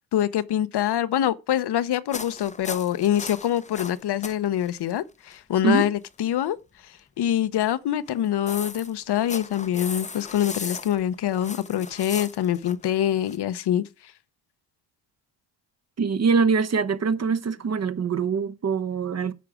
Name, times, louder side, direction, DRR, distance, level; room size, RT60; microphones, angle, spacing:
voice 1, 0.1-6.6 7.2-13.8, left 11 dB, 55° left, 0.9 m, -25 dB
sound 1, 2.1-4.3 4.6-4.8 5.3-5.4 8.1-13.4, left 4 dB, 15° left, 0.7 m, -37 dB
voice 2, 16.0-19.3, right 5 dB, 35° right, 0.9 m, -23 dB
10.0 x 5.8 x 4.9 m
cardioid pair, 85°, 48 cm